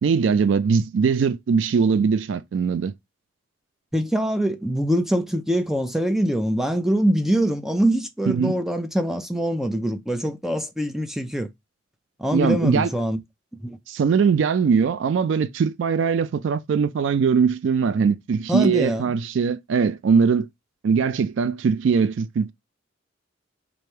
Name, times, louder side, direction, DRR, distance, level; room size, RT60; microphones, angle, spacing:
voice 1, 0.0-2.9 8.3-8.5 12.3-12.9 13.9-20.5 20.8-22.5, right 6 dB, 75° right, 0.3 m, -21 dB
voice 2, 3.9-11.5 12.2-13.2 13.6-13.8 18.5-19.1, equal, ahead, 0.4 m, -23 dB
3.3 x 2.6 x 4.3 m
head